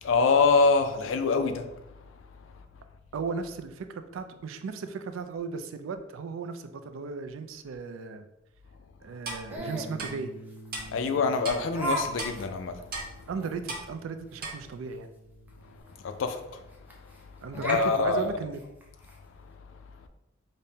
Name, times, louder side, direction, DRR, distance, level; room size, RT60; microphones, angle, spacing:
voice 1, 0.0-1.7 10.9-12.8 16.0-16.6 17.7-18.2, left 4 dB, 70° left, 0.4 m, -24 dB
voice 2, 3.1-8.3 9.0-10.3 13.3-15.1 17.4-18.6, right 5 dB, 85° right, 0.3 m, -36 dB
Clock, 9.2-9.4 10.0-10.1 10.7-10.8 11.4-11.6 12.2-12.3 12.9-13.1 13.7-13.8 14.4-14.5, right 2 dB, 50° right, 0.8 m, -34 dB
Laughter, 9.5-9.9 10.8-10.9 11.7-12.1 12.3-12.4 12.9-13.0 13.4-13.5 15.5-15.6 15.9-16.0 16.9-17.2 17.5-19.1, right 1 dB, 10° right, 0.5 m, -34 dB
Bass guitar, 9.6-15.8, right 1 dB, 45° left, 0.9 m, -49 dB
5.1 x 2.1 x 2.7 m
head